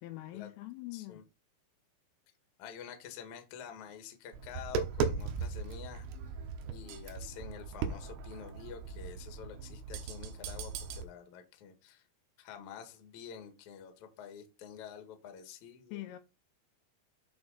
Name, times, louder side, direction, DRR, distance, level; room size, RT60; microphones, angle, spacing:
voice 1, 0.0-1.2 15.9-16.2, left 17 dB, 85° left, 3.2 m, -43 dB
voice 2, 0.9-1.2 2.6-6.1 6.7-12.0 12.4-16.1, left 8 dB, 60° left, 2.0 m, -48 dB
Tap, 4.3-11.0, right 5 dB, 90° right, 3.8 m, -38 dB
9.6 x 4.8 x 4.0 m
omnidirectional pair, 6.0 m